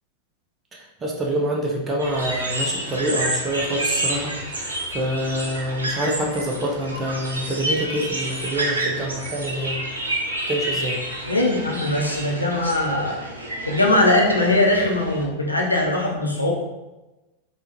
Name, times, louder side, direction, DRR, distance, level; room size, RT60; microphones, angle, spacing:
voice 1, 1.0-9.9 10.5-11.0, right 1 dB, 20° right, -1 dB, 0.6 m, -26 dB
sound 1, 2.0-15.2, right 1 dB, 80° right, 0.5 m, -29 dB
voice 2, 11.2-13.2 13.7-16.5, left 2 dB, 85° left, -2 dB, 0.5 m, -20 dB
3.5 x 2.2 x 2.9 m, 1.1 s
figure-of-eight pair, 90°, 0 cm